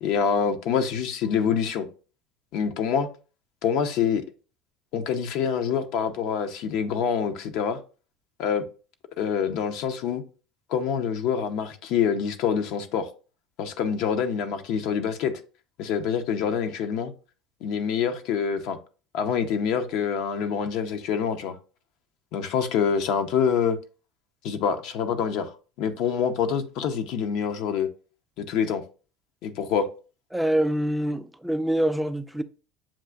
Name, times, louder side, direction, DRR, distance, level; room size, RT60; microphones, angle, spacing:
voice 1, 0.0-1.9 2.5-3.1 3.6-4.2 4.9-7.8 8.4-8.6 9.2-10.2 10.7-13.1 13.6-15.3 15.8-17.1 17.6-18.8 19.1-21.6 22.3-23.8 24.4-27.9 28.4-28.8 29.4-29.9, left 7 dB, 65° left, 0.6 m, -26 dB
voice 2, 30.3-32.4, right 1 dB, 5° right, 0.4 m, -25 dB
7.2 x 2.4 x 2.3 m
supercardioid pair, 100°, 0 cm